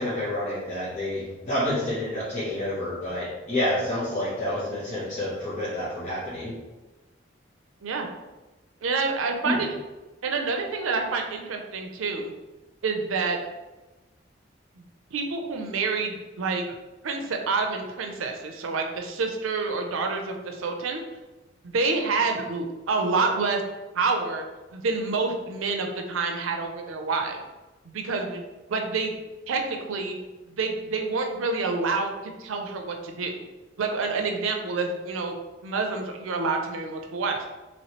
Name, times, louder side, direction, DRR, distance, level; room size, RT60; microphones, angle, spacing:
voice 1, 0.0-6.5 9.4-9.6, left 1 dB, 35° left, -12 dB, 0.9 m, -29 dB
voice 2, 8.8-9.7 10.2-12.3 12.8-13.4 15.1-16.6 17.0-21.0 21.6-23.6 23.9-24.4 24.7-27.4 27.9-28.4 28.7-29.2 29.5-30.2 30.5-33.4 33.8-35.4 35.6-37.4, right 4 dB, 90° right, 4 dB, 0.5 m, -28 dB
3.1 x 3.0 x 2.9 m, 1.1 s
head